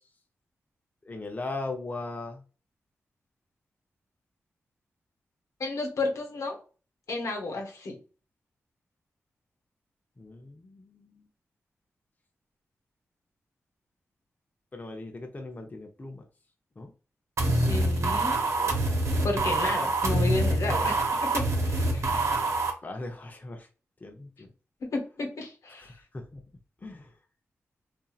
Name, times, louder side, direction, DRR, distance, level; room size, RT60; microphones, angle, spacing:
voice 1, 1.0-2.4 10.2-11.2 14.7-16.3 16.8-16.9 18.6-19.0 22.8-23.7 24.0-24.5 25.7-26.4 26.8-27.1, left 2 dB, 30° left, 0.7 m, -39 dB
voice 2, 5.6-6.6 7.1-8.0 17.4-18.4 19.2-22.2 24.9-25.9, left 2 dB, 75° left, 0.9 m, -32 dB
sound 1, 17.4-22.7, right 2 dB, 60° right, 0.8 m, -26 dB
2.7 x 2.5 x 2.4 m
cardioid pair, 45°, 5 cm